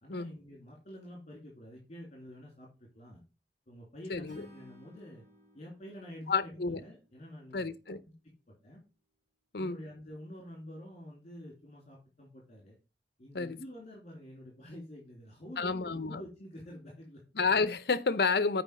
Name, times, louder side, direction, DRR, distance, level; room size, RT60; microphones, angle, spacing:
voice 1, 0.0-2.7 2.9-3.2 3.7-5.2 5.5-8.1 8.6-8.8 9.6-12.8 13.2-17.2, equal, 40° left, 2.7 m, -48 dB
voice 2, 4.1-4.4 6.3-6.8 7.5-8.0 9.5-9.8 13.3-13.6 15.6-16.2 17.4-18.6, left 4 dB, 60° left, 0.7 m, -30 dB
Acoustic guitar / Strum, 4.3-7.5, equal, 45° right, 2.3 m, -58 dB
7.8 x 5.0 x 5.2 m
head